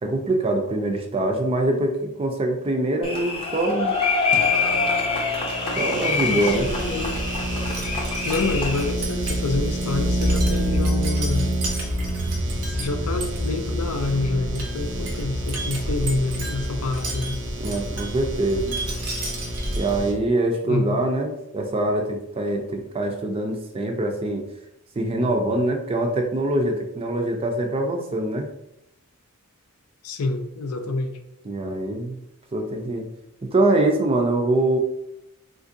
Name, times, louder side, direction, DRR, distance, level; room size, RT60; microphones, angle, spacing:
voice 1, 0.0-4.0 5.8-6.7 17.6-18.8 19.8-24.4 25.0-28.5 31.5-32.2 32.5-33.1 33.4-34.8, right 1 dB, 25° right, 3 dB, 0.4 m, -24 dB
sound 1, 3.0-8.9, left 4 dB, 25° left, 0.6 m, -25 dB
sound 2, 4.3-20.1, right 1 dB, 55° right, 0.7 m, -31 dB
voice 2, 6.3-7.3 8.2-11.5 12.6-17.4 20.6-21.0 30.0-31.2, left 3 dB, 85° left, 6 dB, 0.5 m, -27 dB
Wind chime, 6.4-20.2, equal, 85° right, 0.9 m, -28 dB
3.6 x 2.5 x 2.6 m, 0.83 s
head